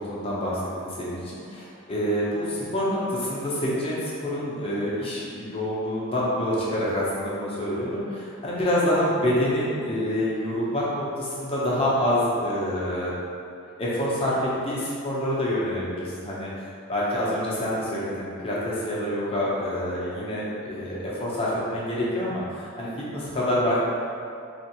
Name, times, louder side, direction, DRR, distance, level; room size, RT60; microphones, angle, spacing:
voice 1, 0.0-13.1 13.8-16.5 16.9-22.9 23.1-23.8, left 1 dB, 25° left, -7 dB, 0.6 m, -27 dB
3.5 x 2.4 x 2.8 m, 2.5 s
head